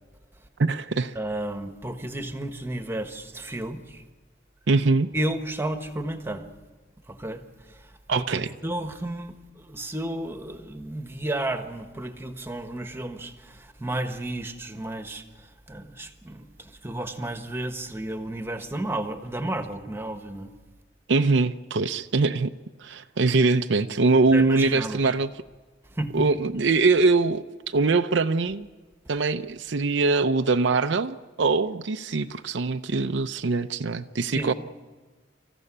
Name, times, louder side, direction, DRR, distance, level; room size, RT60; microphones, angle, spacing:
voice 1, 0.6-1.2 4.7-5.1 8.1-8.5 21.1-22.5 22.8-25.3 26.1-28.7 29.1-34.5, right 3 dB, 70° right, 7 dB, 0.6 m, -23 dB
voice 2, 1.1-4.0 5.1-6.4 7.1-7.4 7.7-20.5 24.3-25.0 25.9-26.2 34.3-34.5, right 1 dB, 15° right, 7 dB, 1.4 m, -32 dB
26.5 x 15.0 x 9.9 m, 1.4 s
head